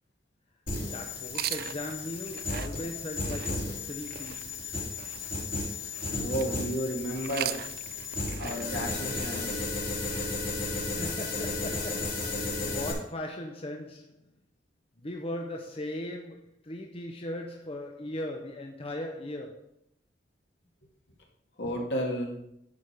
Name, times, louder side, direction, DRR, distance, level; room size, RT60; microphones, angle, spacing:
sound 1, 0.7-12.9, left 3 dB, 50° left, 2.4 m, -34 dB
voice 1, 0.8-4.6 10.8-14.3 15.0-19.7, left 1 dB, 35° left, 0.8 m, -38 dB
sound 2, 1.2-6.6 7.1-11.1, right 12 dB, 60° right, 0.3 m, -41 dB
voice 2, 6.1-7.6 8.4-9.6 21.6-22.4, equal, 70° left, 2.4 m, -32 dB
11.0 x 4.7 x 5.0 m
head